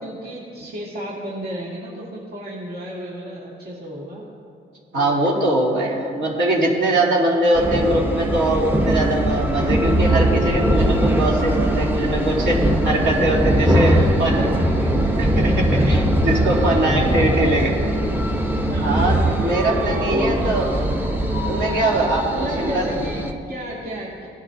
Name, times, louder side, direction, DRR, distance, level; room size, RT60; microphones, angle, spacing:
voice 1, 0.0-4.2 4.9-5.2 13.0-15.8 16.5-18.1 18.5-19.0 20.0-21.0 22.3-24.3, equal, 50° right, -6 dB, 2.3 m, -33 dB
voice 2, 4.9-14.4 15.2-17.7 18.8-20.7 21.5-22.9, right 1 dB, 65° right, -5 dB, 3.1 m, -22 dB
sound 1, 7.5-23.3, right 1 dB, 10° right, 1.0 m, -21 dB
18.5 x 11.0 x 2.7 m, 2.3 s
cardioid pair, 90°, 20 cm